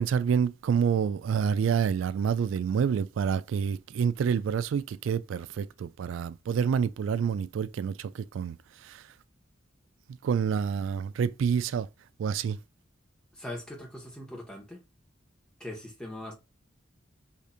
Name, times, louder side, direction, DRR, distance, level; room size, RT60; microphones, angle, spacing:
voice 1, 0.0-9.1 10.2-11.9 12.2-12.6, right 7 dB, 80° right, 0.3 m, -28 dB
voice 2, 13.3-14.8 15.6-16.3, left 1 dB, 5° left, 1.3 m, -41 dB
4.8 x 2.8 x 2.4 m
head